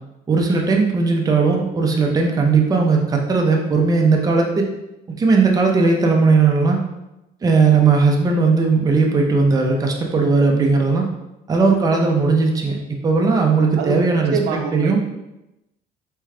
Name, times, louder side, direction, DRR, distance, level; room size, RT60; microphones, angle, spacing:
voice 1, 0.3-4.6 5.1-6.8 7.4-11.1 11.5-14.3 14.7-15.0, right 4 dB, 20° right, 1 dB, 0.5 m, -17 dB
voice 2, 13.8-15.0, right 6 dB, 85° right, 5 dB, 0.5 m, -25 dB
3.6 x 2.3 x 3.2 m, 0.93 s
cardioid pair, 110°, 17 cm